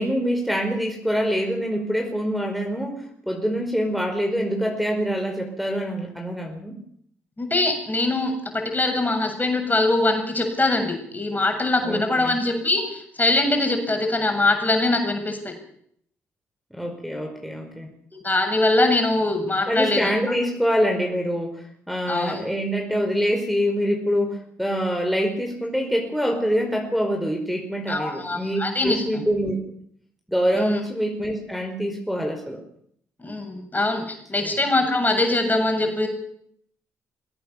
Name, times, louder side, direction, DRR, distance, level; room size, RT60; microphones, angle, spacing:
voice 1, 0.0-6.7 11.8-12.4 16.7-17.9 19.7-29.6 30.3-32.6 34.4-34.6, equal, ahead, 3 dB, 5.1 m, -25 dB
voice 2, 7.4-15.5 18.2-20.1 22.1-22.4 27.9-29.2 30.5-30.8 33.2-36.1, left 2 dB, 25° left, 4 dB, 7.5 m, -22 dB
23.0 x 17.0 x 7.2 m, 0.66 s
hypercardioid pair, 40°, 7 cm